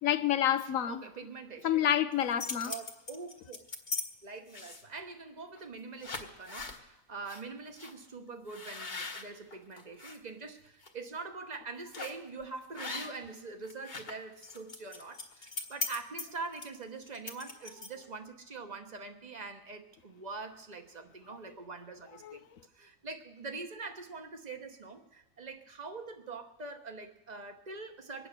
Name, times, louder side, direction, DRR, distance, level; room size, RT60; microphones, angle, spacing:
voice 1, 0.0-1.0 1.6-2.7 22.2-22.4, left 10 dB, 85° left, 1.2 m, -28 dB
voice 2, 0.9-1.9 2.6-3.7 4.2-22.4 22.7-28.3, right 4 dB, 35° right, 1.2 m, -44 dB
sound 1, 2.1-4.0 4.5-5.0 5.6-5.7 6.0-6.8 7.3-7.4 7.8-7.9 8.5-10.2 10.6-10.9 11.9-12.3 12.7-13.3 13.6-18.1, left 4 dB, 35° left, 1.3 m, -40 dB
23.5 x 9.2 x 6.7 m
omnidirectional pair, 1.4 m